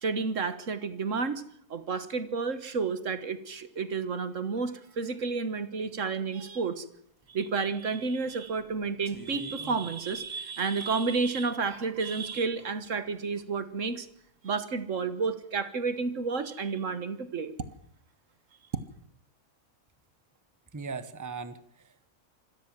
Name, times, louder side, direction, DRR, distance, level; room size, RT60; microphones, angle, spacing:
voice 1, 0.0-1.4 1.7-6.8 7.3-14.1 14.4-17.5, right 4 dB, 65° right, 12 dB, 1.7 m, -31 dB
sound 1, 7.2-7.3 7.8-8.1 8.6-10.9 11.6-12.1, left 1 dB, 15° left, 2.6 m, -48 dB
voice 2, 20.7-22.1, right 4 dB, 15° right, 12 dB, 1.1 m, -39 dB
26.5 x 13.5 x 7.5 m, 0.70 s
omnidirectional pair, 1.4 m